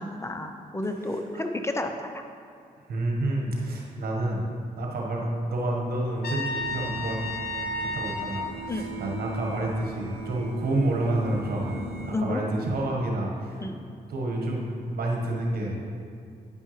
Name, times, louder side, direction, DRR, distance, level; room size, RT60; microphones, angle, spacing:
voice 1, 0.0-2.2 8.7-8.9 12.1-12.4 13.6-13.8, left 2 dB, 15° left, 5 dB, 0.7 m, -31 dB
voice 2, 2.9-4.4 4.8-7.2 7.8-13.5 14.1-15.8, right 1 dB, 70° right, -1 dB, 1.5 m, -29 dB
Trumpet, 6.2-8.5, left 2 dB, 70° left, 0.8 m, -32 dB
sound 1, 6.5-12.2, right 3 dB, 85° right, 0.6 m, -39 dB
9.8 x 5.4 x 3.3 m, 2.3 s
supercardioid pair, 55°, 17 cm